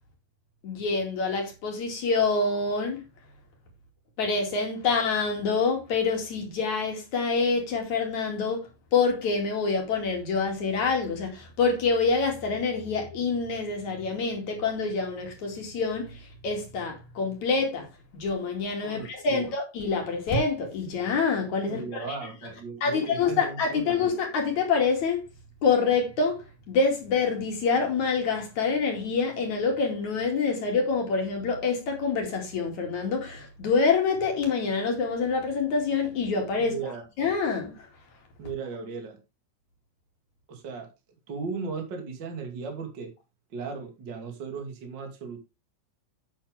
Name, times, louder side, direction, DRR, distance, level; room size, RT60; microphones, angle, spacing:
voice 1, 0.6-3.0 4.2-17.9 18.1-22.2 22.8-25.2 25.6-37.9, left 4 dB, 45° left, 3.0 m, -26 dB
voice 2, 18.8-19.5 21.7-24.0 36.6-37.0 38.4-39.2 40.5-40.9 41.3-43.1 43.5-45.4, right 5 dB, 35° right, 1.9 m, -36 dB
10.0 x 8.1 x 3.4 m
omnidirectional pair, 5.8 m